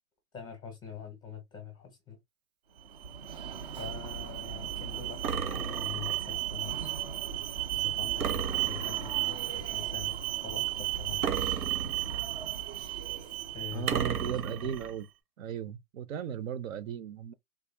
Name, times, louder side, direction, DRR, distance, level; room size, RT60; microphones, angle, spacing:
voice 1, 0.3-2.2 3.8-6.9 7.7-11.3 13.5-14.7, left 6 dB, 10° left, 0.6 m, -44 dB
Alarm, 2.8-14.8, right 12 dB, 30° right, 0.4 m, -34 dB
sound 1, 5.2-6.3 8.2-9.3 11.2-12.3 13.9-14.9, right 7 dB, 85° right, 1.1 m, -34 dB
voice 2, 13.7-15.1 15.4-17.3, right 9 dB, 60° right, 0.7 m, -36 dB
3.5 x 2.3 x 3.3 m
hypercardioid pair, 155°, 44 cm